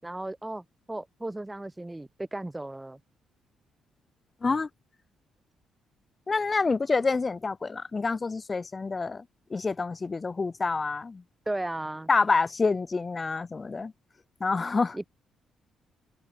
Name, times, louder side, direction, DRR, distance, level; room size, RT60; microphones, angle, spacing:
voice 1, 0.0-3.0 11.5-12.1 14.9-15.1, right 1 dB, 10° right, 7.3 m, -35 dB
voice 2, 6.3-9.2 9.5-11.2 12.1-13.9 14.4-15.0, left 4 dB, 30° left, 0.9 m, -27 dB
cardioid pair, 90°, 0 cm